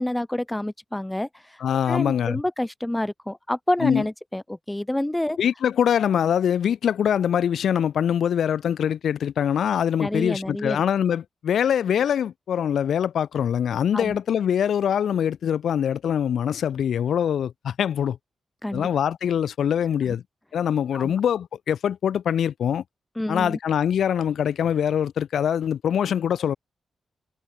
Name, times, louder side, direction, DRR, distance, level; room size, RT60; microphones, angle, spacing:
voice 1, 0.0-1.6 1.9-5.4 10.0-10.8 13.9-14.2 18.6-18.9 20.1-20.2 20.9-21.1 23.2-23.6, left 1 dB, 10° left, 5.8 m, -28 dB
voice 2, 1.6-2.4 3.8-4.0 5.4-18.2 18.7-20.2 20.5-22.8 23.3-26.5, left 9 dB, 75° left, 6.8 m, -23 dB
supercardioid pair, 50°, 0 cm